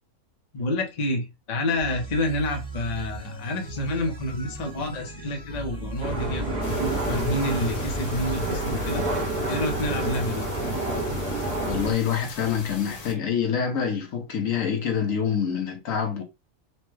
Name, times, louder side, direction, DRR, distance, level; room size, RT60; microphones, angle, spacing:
voice 1, 0.5-9.0 9.5-10.4, left 1 dB, 40° left, 0.6 m, -28 dB
sound 1, 1.8-9.3, right 2 dB, 5° left, 0.8 m, -37 dB
sound 2, 6.0-11.9, right 1 dB, 50° right, 1.5 m, -28 dB
sound 3, 6.6-13.1, left 3 dB, 85° left, 1.5 m, -41 dB
voice 2, 11.6-16.2, left 7 dB, 65° left, 1.0 m, -26 dB
4.2 x 2.2 x 3.1 m
omnidirectional pair, 1.6 m